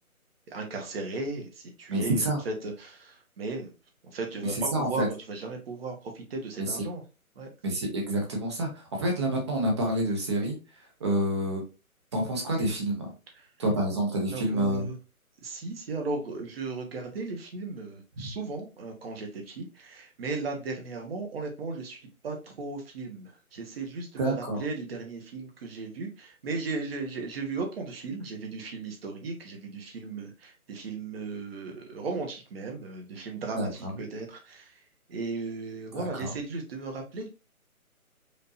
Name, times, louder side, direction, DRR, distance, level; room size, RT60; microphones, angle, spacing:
voice 1, 0.5-3.7 4.0-7.0 7.3-7.5 13.4-13.5 14.3-15.0 15.4-34.8 35.1-37.3, right 3 dB, 40° right, 2 dB, 1.2 m, -36 dB
voice 2, 1.9-2.4 4.4-5.1 6.6-6.8 7.6-10.6 11.0-11.6 12.1-13.1 13.6-14.9 24.2-24.6 33.5-33.9 35.9-36.3, right 1 dB, 20° right, 1 dB, 0.7 m, -28 dB
5.0 x 2.8 x 2.8 m, 0.31 s
figure-of-eight pair, 145°, 43 cm